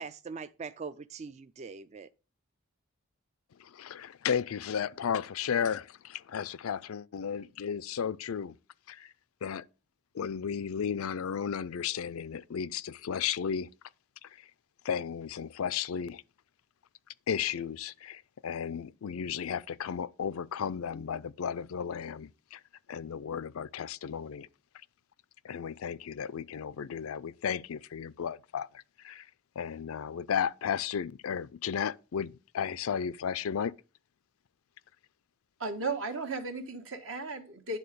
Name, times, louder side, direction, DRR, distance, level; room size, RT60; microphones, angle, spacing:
voice 1, 0.0-2.1, right 5 dB, 35° right, 0.3 m, -42 dB
voice 2, 3.6-8.6 8.9-9.1 9.4-9.6 10.1-13.7 14.2-14.3 14.8-16.2 17.3-22.6 22.9-24.5 25.4-29.3 29.6-33.7, left 7 dB, 85° left, 0.4 m, -34 dB
voice 3, 35.6-37.8, right 3 dB, 70° right, 1.5 m, -35 dB
11.0 x 3.9 x 6.8 m
head